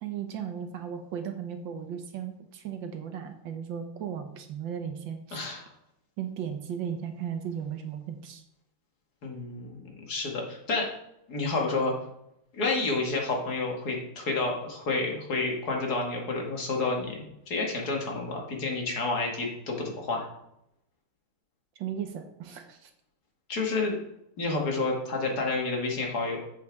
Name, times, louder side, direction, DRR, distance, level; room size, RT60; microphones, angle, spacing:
voice 1, 0.0-5.5 6.2-8.4 21.8-22.9, right 8 dB, 65° right, 6 dB, 1.5 m, -36 dB
voice 2, 5.3-5.6 9.2-10.9 11.3-11.9 12.5-20.3 23.5-24.0 24.4-26.4, left 3 dB, 50° left, 0 dB, 2.3 m, -30 dB
8.0 x 7.9 x 3.5 m, 0.78 s
omnidirectional pair, 2.4 m